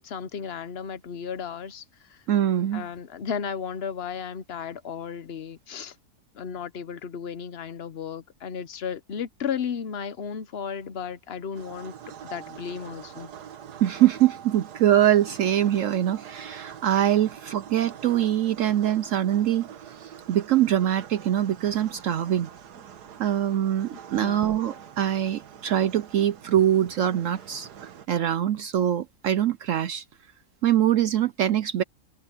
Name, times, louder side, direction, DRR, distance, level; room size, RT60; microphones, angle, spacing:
voice 1, 0.0-2.2 2.7-6.0 6.3-11.9 12.2-13.3 23.9-24.5, left 7 dB, 50° left, 0.9 m, -34 dB
voice 2, 2.3-2.9 13.8-19.7 20.0-22.5 23.2-30.0 30.6-31.8, right 11 dB, 65° right, 0.8 m, -23 dB
sound 1, 11.5-28.1, right 9 dB, 85° right, 1.7 m, -44 dB
omnidirectional pair, 1.7 m